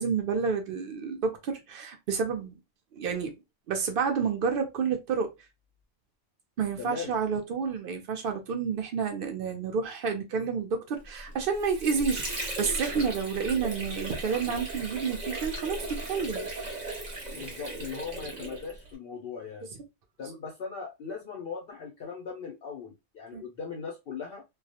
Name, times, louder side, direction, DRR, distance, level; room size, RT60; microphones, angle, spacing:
voice 1, 0.0-2.5 2.9-3.3 3.7-5.3 6.6-16.5 23.3-23.4, right 5 dB, 70° right, 0.5 m, -30 dB
voice 2, 6.8-7.2 17.3-19.7 20.2-24.4, left 6 dB, 65° left, 0.5 m, -39 dB
Water / Sink (filling or washing), 11.3-18.9, right 1 dB, 35° right, 0.9 m, -37 dB
2.3 x 2.0 x 2.7 m
omnidirectional pair, 1.5 m